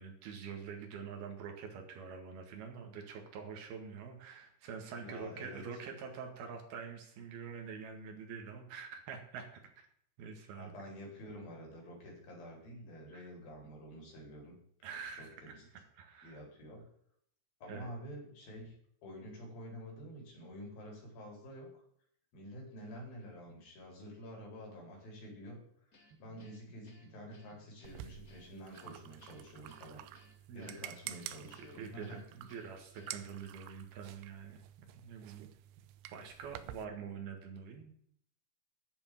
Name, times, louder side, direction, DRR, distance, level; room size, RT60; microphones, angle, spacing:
voice 1, 0.0-9.9 10.2-10.7 13.1-13.2 14.8-15.3 16.0-16.4 17.7-17.9 27.1-27.2 27.5-27.6 30.5-30.9 31.4-35.5 36.1-37.8, right 6 dB, 60° right, 3 dB, 3.5 m, -46 dB
voice 2, 5.0-5.6 10.6-14.6 15.2-15.6 16.2-16.9 17.6-18.7 19.0-21.7 22.3-25.6 25.9-30.0 30.5-32.2, equal, 50° left, -1 dB, 5.8 m, -49 dB
Guitar, 25.9-33.5, left 2 dB, 25° left, 1.9 m, -65 dB
sound 1, 27.8-36.9, right 13 dB, 85° right, 3.1 m, -50 dB
10.5 x 6.9 x 9.2 m, 0.66 s
omnidirectional pair, 5.3 m